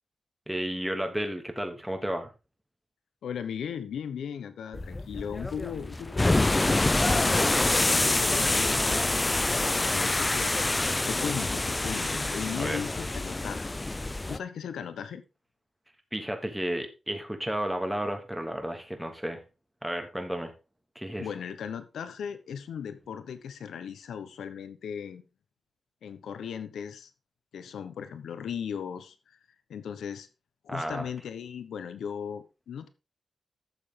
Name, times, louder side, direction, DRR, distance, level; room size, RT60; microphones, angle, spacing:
voice 1, 0.5-2.3 8.6-9.0 12.6-12.8 16.1-19.4 19.8-20.5 20.9-21.3 30.7-31.1, right 1 dB, 5° right, 4 dB, 2.8 m, -32 dB
voice 2, 3.2-7.6 8.0-10.8 11.1-13.7 14.3-15.2 21.2-25.2 26.0-27.1 27.5-29.4 29.7-30.3 30.6-32.9, left 7 dB, 90° left, 11 dB, 1.1 m, -37 dB
sound 1, 4.7-14.4, left 2 dB, 25° left, 0.5 m, -26 dB
12.0 x 7.2 x 3.9 m, 0.29 s
cardioid pair, 60°, 0 cm